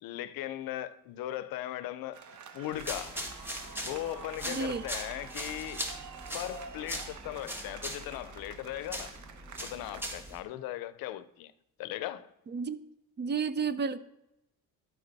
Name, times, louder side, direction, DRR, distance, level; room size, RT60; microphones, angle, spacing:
voice 1, 0.0-2.2 2.5-3.2 3.7-5.9 6.3-9.1 9.6-11.5 11.8-12.3, left 13 dB, 80° left, 0.6 m, -38 dB
sound 1, 2.1-10.1, right 6 dB, 55° right, 1.0 m, -48 dB
sound 2, 2.7-10.4, equal, 5° right, 1.4 m, -40 dB
voice 2, 4.4-4.8 12.5-12.8 13.2-14.0, right 5 dB, 30° right, 0.6 m, -32 dB
12.5 x 4.9 x 4.1 m
cardioid pair, 100°, 35 cm